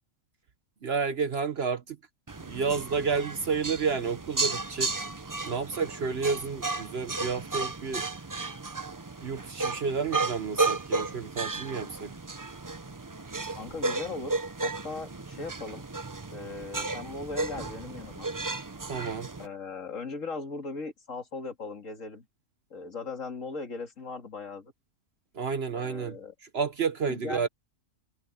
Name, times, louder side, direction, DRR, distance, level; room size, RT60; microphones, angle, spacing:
voice 1, 0.8-2.0 2.4-5.1 5.5-8.0 9.2-12.1 18.9-19.3 25.3-26.2 26.5-27.5, right 5 dB, 50° right, 1.0 m, -30 dB
sound 1, 2.3-19.5, right 3 dB, 25° right, 0.4 m, -34 dB
voice 2, 13.6-15.8 16.3-18.3 19.4-22.3 22.7-24.7 25.7-26.3 27.1-27.4, left 3 dB, 60° left, 2.7 m, -38 dB
omnidirectional pair, 1.5 m